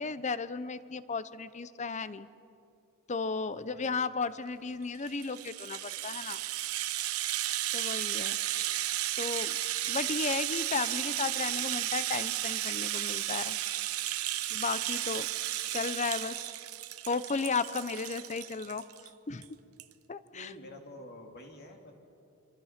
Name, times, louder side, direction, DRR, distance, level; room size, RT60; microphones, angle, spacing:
voice 1, 0.0-2.3 3.1-6.4 7.7-8.4 9.2-9.6 9.9-13.6 14.5-15.3 15.7-16.5 17.1-18.8 19.3-19.4 20.1-20.5, left 4 dB, 35° left, 15 dB, 0.6 m, -34 dB
voice 2, 3.5-3.9 20.3-22.0, left 1 dB, 50° left, 3 dB, 2.5 m, -49 dB
Rattle (instrument), 5.0-19.1 19.4-19.5 19.8-19.9, right 13 dB, 85° right, 0.9 m, -34 dB
25.5 x 25.5 x 5.8 m, 2.7 s
head